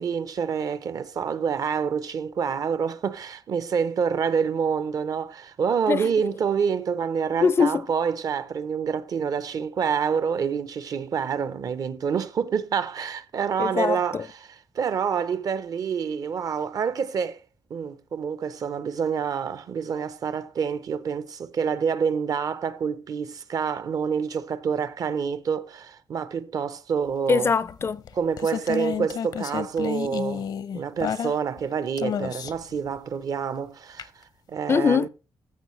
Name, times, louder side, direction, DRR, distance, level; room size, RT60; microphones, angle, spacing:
voice 1, 0.0-14.5 14.7-17.4 17.7-27.5 28.1-35.1, right 6 dB, 55° right, 0.7 m, -27 dB
voice 2, 7.4-7.8 13.6-14.2 27.3-28.0 34.7-35.1, left 5 dB, 35° left, 0.4 m, -22 dB
sound 1, 27.7-31.6 32.0-32.7 34.0-34.1, left 8 dB, 70° left, 0.7 m, -30 dB
14.0 x 6.3 x 3.2 m
wide cardioid pair, 140°, 7 cm